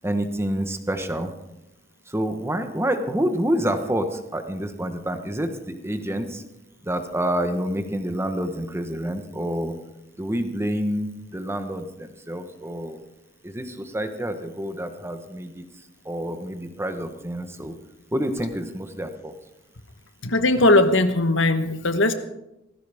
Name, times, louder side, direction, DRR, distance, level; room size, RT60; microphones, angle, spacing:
voice 1, 0.0-1.3 2.1-6.4 6.8-9.7 10.2-13.0 13.4-15.6 16.0-17.7 18.1-19.3, equal, 15° right, 7 dB, 1.2 m, -28 dB
voice 2, 20.2-22.1, left 2 dB, 80° left, 9 dB, 1.2 m, -19 dB
18.0 x 15.0 x 3.6 m, 0.90 s
head